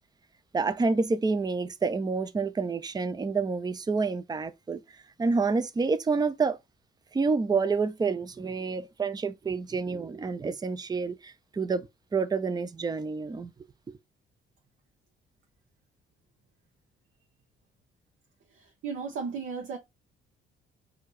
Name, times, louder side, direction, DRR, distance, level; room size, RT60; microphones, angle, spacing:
voice 1, 0.5-4.8 5.2-6.6 7.1-11.9 12.1-13.5, right 4 dB, 20° right, 0.5 m, -28 dB
voice 2, 18.5-19.8, right 5 dB, 75° right, 1.0 m, -35 dB
4.5 x 2.7 x 3.2 m
cardioid pair, 90°, 20 cm